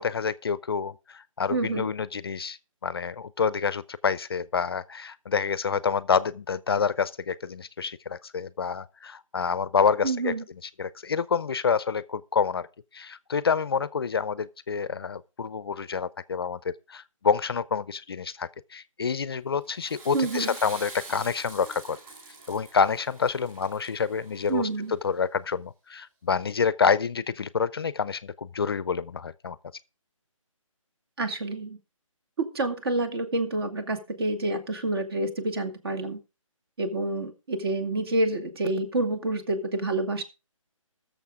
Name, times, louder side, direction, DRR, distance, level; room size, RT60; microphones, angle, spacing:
voice 1, 0.0-10.3 10.6-12.7 12.9-22.0 22.5-29.6, left 6 dB, 45° left, 0.5 m, -28 dB
voice 2, 1.5-1.9 10.0-10.4 20.1-20.5 24.5-24.9 31.2-31.8 32.5-36.2 36.8-40.2, right 2 dB, 45° right, 2.2 m, -28 dB
Water / Toilet flush, 19.6-24.8, right 3 dB, 15° right, 3.6 m, -45 dB
20.5 x 7.0 x 3.6 m
hypercardioid pair, 165°, 17 cm